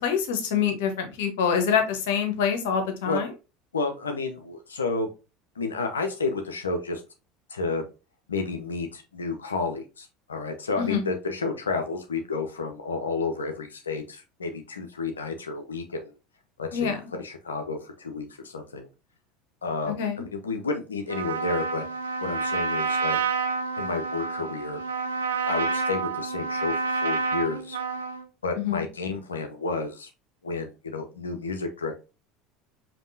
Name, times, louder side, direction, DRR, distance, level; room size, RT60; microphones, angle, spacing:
voice 1, 0.0-3.3 10.8-11.1 16.7-17.1 19.9-20.2 28.6-28.9, left 7 dB, 70° left, 1.0 m, -26 dB
voice 2, 3.7-5.1 5.6-7.0 7.5-7.8 8.3-16.1 16.6-18.9 19.6-20.0 20.3-21.8 22.2-23.2 23.8-24.8 25.5-27.8 28.4-30.1 30.4-31.9, left 3 dB, 85° left, 0.6 m, -31 dB
Trumpet, 21.1-28.2, right 4 dB, 80° right, 0.5 m, -28 dB
5.3 x 2.9 x 2.6 m
hypercardioid pair, 75°, 0 cm